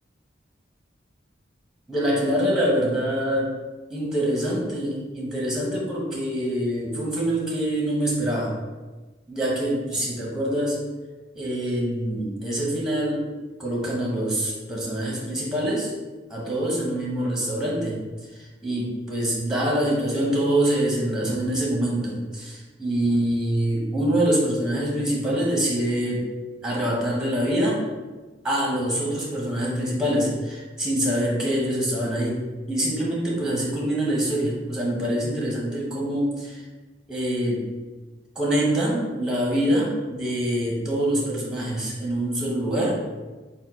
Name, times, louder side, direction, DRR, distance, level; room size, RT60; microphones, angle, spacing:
voice 1, 1.9-3.5 3.9-8.6 9.3-10.8 11.3-13.3 13.6-15.9 16.3-18.0 18.3-26.3 26.6-27.8 28.4-32.4 32.7-36.6 37.1-37.7 38.4-43.0, right 1 dB, 5° right, -4 dB, 0.8 m, -25 dB
4.3 x 2.1 x 4.2 m, 1.2 s
head